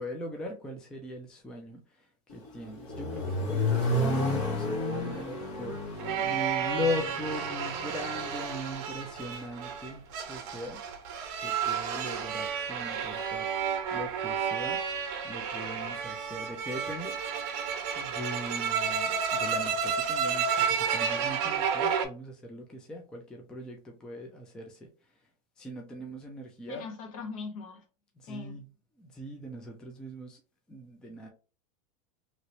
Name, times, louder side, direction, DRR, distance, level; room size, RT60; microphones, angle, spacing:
voice 1, 0.0-10.0 10.3-10.8 11.2-14.8 15.2-17.2 18.0-24.9 25.6-26.9 28.2-28.7 29.0-30.4 30.7-31.3, left 1 dB, 5° left, 0.3 m, -40 dB
Accelerating revving vroom, 2.3-8.3, left 1 dB, 35° left, 0.9 m, -32 dB
sound 1, 4.3-22.1, right 7 dB, 45° right, 0.8 m, -31 dB
voice 2, 26.7-27.8 28.3-28.6, left 4 dB, 55° left, 1.1 m, -40 dB
2.9 x 2.9 x 2.7 m
supercardioid pair, 160°, 20 cm